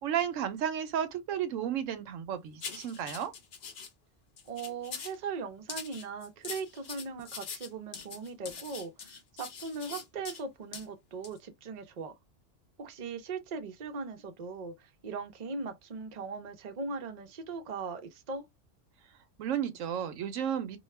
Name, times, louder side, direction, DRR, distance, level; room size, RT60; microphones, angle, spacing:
voice 1, 0.0-3.3 19.4-20.8, right 9 dB, 90° right, 1.0 m, -33 dB
sound 1, 2.6-3.9 4.4-5.2 5.7-10.4 10.7-10.9 11.2-11.4, left 6 dB, 55° left, 0.6 m, -43 dB
voice 2, 4.5-12.1 12.8-18.5, right 4 dB, 50° right, 0.5 m, -39 dB
2.3 x 2.3 x 3.1 m
omnidirectional pair, 1.3 m